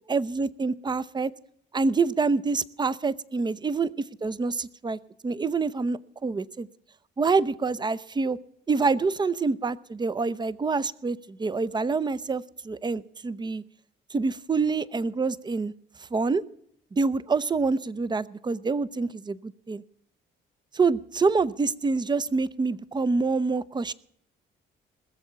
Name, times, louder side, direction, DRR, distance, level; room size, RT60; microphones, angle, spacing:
voice 1, 0.0-1.3 1.7-3.9 4.2-5.0 5.2-6.7 7.2-8.4 8.7-13.6 14.1-15.7 16.1-16.4 16.9-19.8 20.7-23.9, right 4 dB, 20° right, 18 dB, 0.6 m, -26 dB
20.5 x 7.1 x 6.8 m, 0.68 s
cardioid pair, 90°, 20 cm